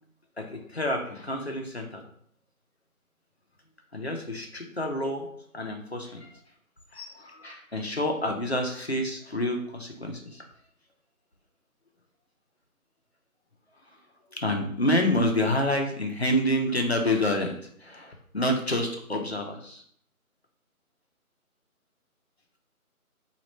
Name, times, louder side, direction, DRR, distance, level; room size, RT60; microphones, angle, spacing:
voice 1, 0.4-2.0 3.9-5.3 5.5-6.3 6.9-10.4 14.3-17.5 17.8-19.8, left 1 dB, 45° left, 2 dB, 0.6 m, -28 dB
3.2 x 2.4 x 4.2 m, 0.63 s
figure-of-eight pair, 180°, 44 cm